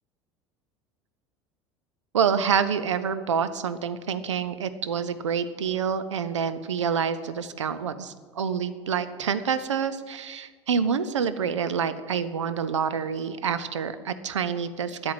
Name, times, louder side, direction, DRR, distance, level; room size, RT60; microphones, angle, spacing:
voice 1, 2.1-15.1, right 7 dB, 80° right, 12 dB, 0.7 m, -27 dB
9.8 x 8.5 x 7.7 m, 1.5 s
figure-of-eight pair, 70°, 15 cm